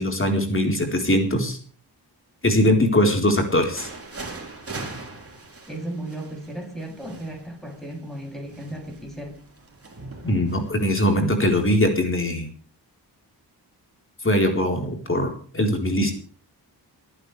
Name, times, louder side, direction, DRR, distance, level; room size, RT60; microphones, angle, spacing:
voice 1, 0.0-1.6 2.4-3.9 10.2-12.5 14.2-16.1, left 1 dB, 30° left, 4.2 m, -21 dB
sound 1, 3.8-11.0, right 3 dB, 30° right, 4.4 m, -40 dB
voice 2, 5.7-9.4, right 1 dB, ahead, 7.2 m, -35 dB
28.0 x 9.8 x 3.4 m
cardioid pair, 65°, 43 cm